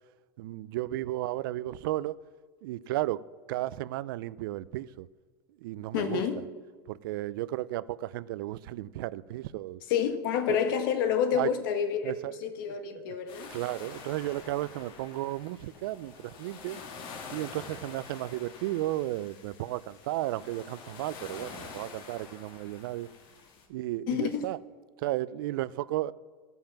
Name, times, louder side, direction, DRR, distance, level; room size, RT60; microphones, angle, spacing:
voice 1, 0.4-2.2 2.6-3.2 3.5-5.1 5.6-6.4 6.9-9.8 11.3-11.5 12.0-12.5 12.8-13.2 13.5-16.8 17.3-23.1 23.7-24.6 25.0-26.1, right 15 dB, 70° right, 0.4 m, -34 dB
voice 2, 5.9-6.4 9.9-12.1 12.4-13.5 24.1-24.4, left 8 dB, 65° left, 1.3 m, -28 dB
sound 1, 13.3-23.7, left 5 dB, 45° left, 1.6 m, -47 dB
15.0 x 5.4 x 5.8 m
supercardioid pair, 150°, 12 cm